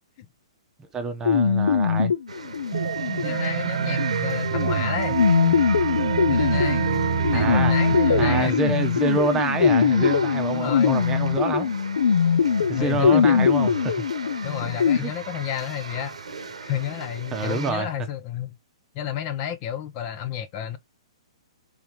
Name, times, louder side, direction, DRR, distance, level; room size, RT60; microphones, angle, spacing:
voice 1, 0.9-2.1 7.3-7.7 8.2-11.8 12.7-14.0 14.6-15.1 17.3-17.9, right 4 dB, 15° right, 0.9 m, -27 dB
sound 1, 1.3-15.0, left 6 dB, 80° left, 0.5 m, -22 dB
sound 2, 2.3-17.7, right 4 dB, 90° right, 0.9 m, -37 dB
sound 3, 2.7-8.4, right 9 dB, 65° right, 0.5 m, -26 dB
voice 2, 3.2-5.7 6.3-8.7 10.5-11.1 12.5-13.5 14.4-16.2 16.6-18.6 18.9-20.8, left 10 dB, 35° left, 0.7 m, -31 dB
3.6 x 3.5 x 3.0 m
hypercardioid pair, 130°, 3 cm